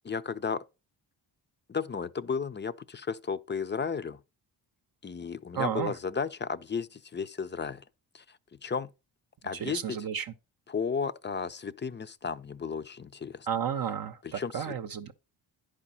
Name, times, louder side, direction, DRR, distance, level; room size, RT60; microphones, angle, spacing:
voice 1, 0.0-0.6 1.7-4.2 5.0-7.8 8.1-8.9 9.4-10.0 10.7-13.5 14.2-14.8, left 5 dB, 25° left, 0.5 m, -34 dB
voice 2, 5.5-5.9 9.6-10.3 13.5-15.1, right 8 dB, 55° right, 0.7 m, -32 dB
10.5 x 5.0 x 4.1 m
cardioid pair, 70°, 44 cm